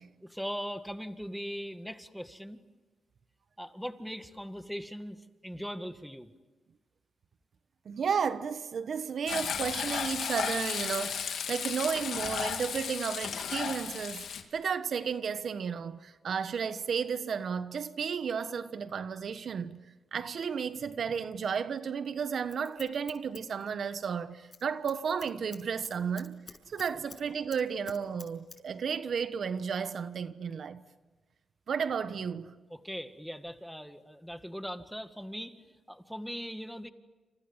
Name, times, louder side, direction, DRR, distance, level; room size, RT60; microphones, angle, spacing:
voice 1, 0.2-2.6 3.6-6.3 32.7-36.9, equal, ahead, 1.9 m, -40 dB
voice 2, 7.8-19.8 20.1-26.4 26.7-30.8 31.7-32.5, right 6 dB, 65° right, 1.2 m, -33 dB
Frying (food), 9.3-14.4, left 7 dB, 80° left, 2.8 m, -34 dB
Scissors, 22.2-24.1 24.4-24.6 24.9-27.2 27.5-28.6 28.9-29.0, left 4 dB, 40° left, 7.4 m, -49 dB
28.0 x 28.0 x 7.3 m
cardioid pair, 75°, 0 cm